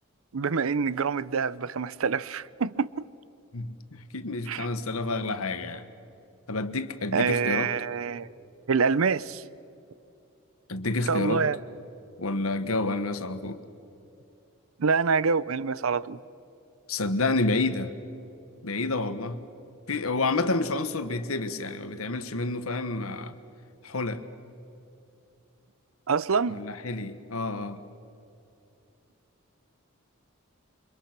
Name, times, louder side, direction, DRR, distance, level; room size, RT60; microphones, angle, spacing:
voice 1, 0.3-3.0 4.5-4.7 7.1-8.3 8.7-9.4 11.1-11.6 14.8-16.2 26.1-26.6, right 5 dB, 80° right, 0.6 m, -26 dB
voice 2, 3.5-5.9 6.5-7.7 10.7-11.4 12.2-13.6 16.9-17.9 18.6-19.4 19.9-23.3 23.8-24.2 26.5-27.8, left 2 dB, 85° left, 1.4 m, -29 dB
28.0 x 24.5 x 6.0 m
head